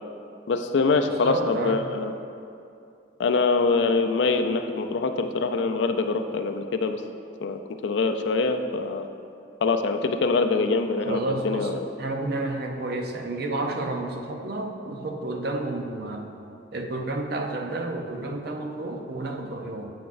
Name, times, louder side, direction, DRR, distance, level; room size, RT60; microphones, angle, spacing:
voice 1, 0.5-2.1 3.2-7.0 7.4-9.1 9.6-11.9, left 4 dB, 75° left, 7 dB, 0.4 m, -24 dB
voice 2, 1.2-1.9 11.0-16.3 16.7-19.9, right 2 dB, 55° right, 3 dB, 0.6 m, -31 dB
8.5 x 5.9 x 2.5 m, 2.5 s
head